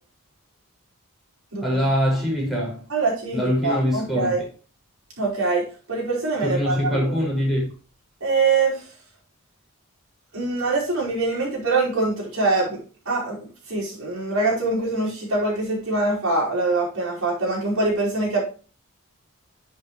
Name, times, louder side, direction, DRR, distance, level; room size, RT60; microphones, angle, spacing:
voice 1, 1.6-2.8 3.3-4.4 6.4-7.7, equal, ahead, 5.3 m, -23 dB
voice 2, 2.9-4.4 5.2-7.1 8.2-8.9 10.3-12.8 13.1-18.4, right 3 dB, 85° right, 5.1 m, -24 dB
10.5 x 7.4 x 3.2 m
head